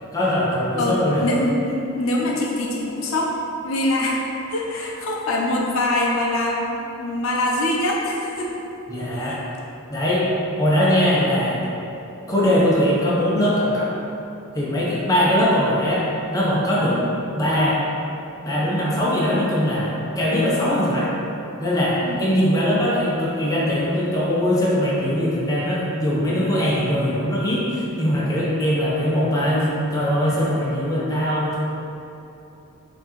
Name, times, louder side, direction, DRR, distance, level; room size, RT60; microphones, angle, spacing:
voice 1, 0.1-1.2 8.9-9.4 9.9-10.3 10.6-11.6 12.3-13.9 14.5-17.0 17.3-17.8 18.4-21.1 21.6-31.6, equal, 15° left, -7 dB, 0.6 m, -21 dB
voice 2, 0.7-3.3 3.6-4.2 4.5-8.6 9.1-9.4 16.9-17.1 22.0-22.2 29.5-29.6, left 1 dB, 70° left, -2 dB, 0.5 m, -24 dB
4.2 x 2.8 x 2.9 m, 2.9 s
head